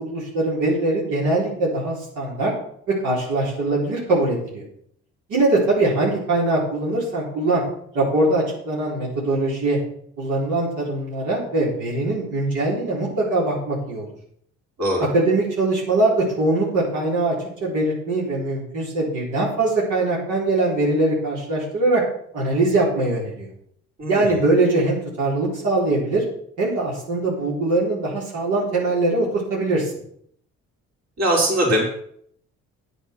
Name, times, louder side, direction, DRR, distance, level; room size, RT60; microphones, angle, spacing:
voice 1, 0.0-2.5 2.9-4.6 5.3-7.6 7.9-9.8 10.2-14.1 15.1-17.3 17.6-22.0 22.3-23.5 24.1-26.2 26.6-29.9, right 2 dB, 85° right, -5 dB, 4.1 m, -22 dB
voice 2, 24.0-24.4 31.2-31.8, right 1 dB, 60° right, -2 dB, 4.7 m, -21 dB
9.7 x 8.4 x 5.9 m, 0.65 s
cardioid pair, 90°, 30 cm